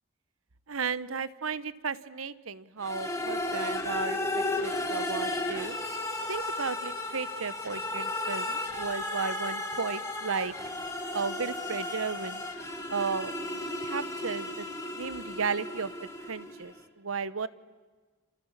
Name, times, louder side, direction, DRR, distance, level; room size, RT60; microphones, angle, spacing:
voice 1, 0.7-5.8 6.3-10.5 11.1-12.4 12.9-13.3 13.8-14.7 14.9-15.9 16.3-17.5, right 5 dB, 80° right, 16 dB, 1.0 m, -34 dB
sound 1, 2.8-16.7, left 2 dB, 15° left, 3.2 m, -34 dB
29.0 x 28.0 x 7.4 m, 1.4 s
head